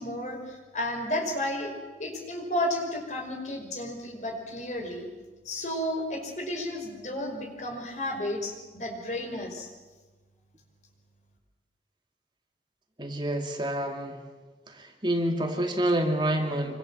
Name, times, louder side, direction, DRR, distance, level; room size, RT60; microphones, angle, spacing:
voice 1, 0.0-1.7 2.0-5.1 5.5-9.7, left 1 dB, 40° left, 3 dB, 5.5 m, -32 dB
voice 2, 13.0-14.2 14.7-16.8, right 1 dB, 25° right, 3 dB, 2.4 m, -28 dB
27.0 x 25.5 x 7.7 m, 1.3 s
head